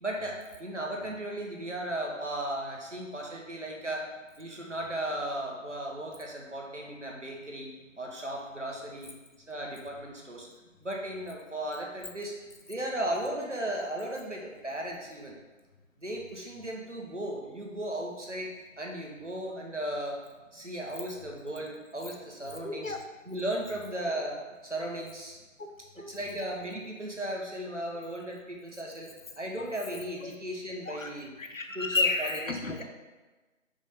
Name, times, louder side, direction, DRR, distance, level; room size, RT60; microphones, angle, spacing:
voice 1, 0.0-4.0 4.4-7.7 8.0-9.1 9.5-10.5 10.8-12.3 12.7-15.4 16.0-18.5 18.8-20.2 20.5-22.9 23.3-24.4 24.6-25.4 26.1-29.1 29.4-31.3 31.7-32.8, right 1 dB, 60° right, -1 dB, 1.3 m, -36 dB
voice 2, 22.6-23.0 25.6-26.5 29.6-29.7 30.9-31.1 31.4-32.8, left 3 dB, 75° left, 4 dB, 0.9 m, -32 dB
5.2 x 3.4 x 5.4 m, 1.2 s
figure-of-eight pair, 180°, 40 cm